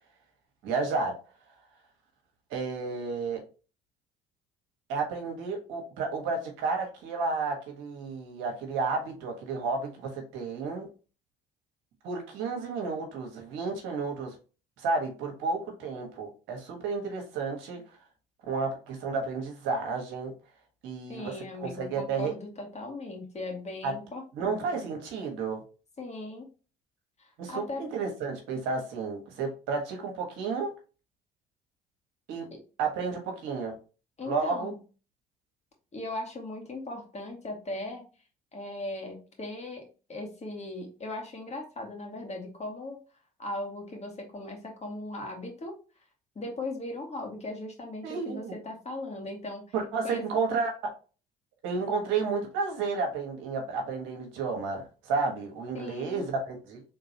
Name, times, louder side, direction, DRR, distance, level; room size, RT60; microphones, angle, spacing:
voice 1, 0.6-1.1 2.5-3.4 4.9-10.9 12.0-14.3 14.8-17.8 18.5-20.3 20.8-21.3 21.6-22.3 23.8-23.9 24.3-25.6 27.4-30.7 32.3-32.5 32.8-33.7 34.2-34.7 48.0-48.5 49.7-50.7 51.6-56.8, right 4 dB, 75° right, 3 dB, 1.4 m, -31 dB
voice 2, 21.1-24.6 26.0-26.5 27.2-27.8 32.5-32.6 34.2-34.7 35.9-38.0 38.5-43.0 43.4-45.7 46.4-49.7 50.0-50.3 55.7-56.2, left 2 dB, 35° left, 1 dB, 2.0 m, -38 dB
3.7 x 3.5 x 2.9 m, 0.34 s
hypercardioid pair, 55°, 20 cm